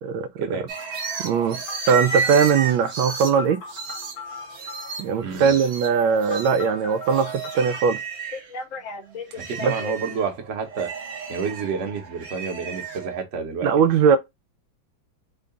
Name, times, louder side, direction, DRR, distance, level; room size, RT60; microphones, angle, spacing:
voice 1, 0.4-0.7 5.2-5.5 9.3-10.9 11.3-13.9, right 5 dB, 50° right, 1.0 m, -29 dB
sound 1, 0.7-8.5 8.9-13.2, right 5 dB, 65° right, 0.6 m, -33 dB
voice 2, 1.2-1.6 1.9-3.6 5.0-8.0 9.6-9.7 13.6-14.2, right 6 dB, 85° right, 1.4 m, -20 dB
Telephone, 1.7-5.0 6.3-7.8 8.3-9.9, left 4 dB, 60° left, 0.8 m, -37 dB
3.6 x 2.3 x 3.7 m
omnidirectional pair, 2.2 m